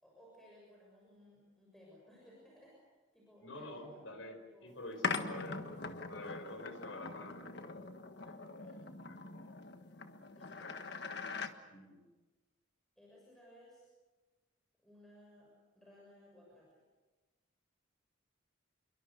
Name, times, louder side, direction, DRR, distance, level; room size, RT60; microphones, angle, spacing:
voice 1, 0.0-2.8 3.1-4.0 4.4-4.8 5.1-5.7 6.2-6.8 8.6-8.8 10.2-10.9 13.0-13.9 14.8-15.5 15.7-16.8, equal, ahead, -4 dB, 6.7 m, -60 dB
voice 2, 3.4-5.6 6.1-7.5 8.2-8.4 9.0-9.2 10.6-10.8 11.7-12.0, left 2 dB, 75° left, 6 dB, 5.2 m, -48 dB
sound 1, 5.0-11.5, left 4 dB, 55° left, 1.5 m, -42 dB
28.5 x 23.0 x 6.7 m, 1.2 s
head